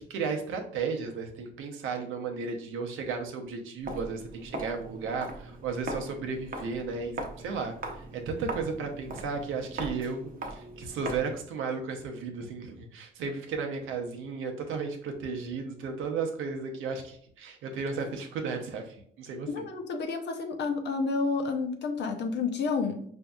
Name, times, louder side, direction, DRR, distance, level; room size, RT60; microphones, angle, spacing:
voice 1, 0.0-19.6, right 5 dB, 85° right, 3 dB, 0.7 m, -34 dB
Walk footsteps, 3.8-11.4, right 2 dB, 45° right, 0.7 m, -40 dB
voice 2, 19.5-23.0, left 4 dB, 60° left, 5 dB, 0.7 m, -30 dB
5.0 x 2.6 x 2.3 m, 0.62 s
cardioid pair, 90°, 20 cm